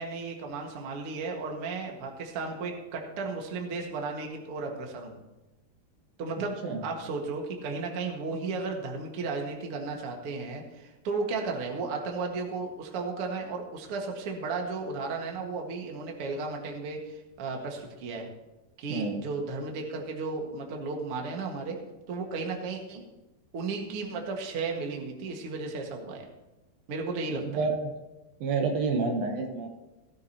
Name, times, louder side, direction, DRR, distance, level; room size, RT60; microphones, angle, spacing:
voice 1, 0.0-5.2 6.2-18.3 18.8-21.8 22.1-23.0 23.5-26.3 26.9-27.7, right 4 dB, 50° right, 1 dB, 1.9 m, -34 dB
voice 2, 18.9-19.2 27.4-27.9 28.4-29.7, right 4 dB, 70° right, 3 dB, 2.9 m, -29 dB
18.0 x 13.0 x 2.9 m, 1.0 s
omnidirectional pair, 4.5 m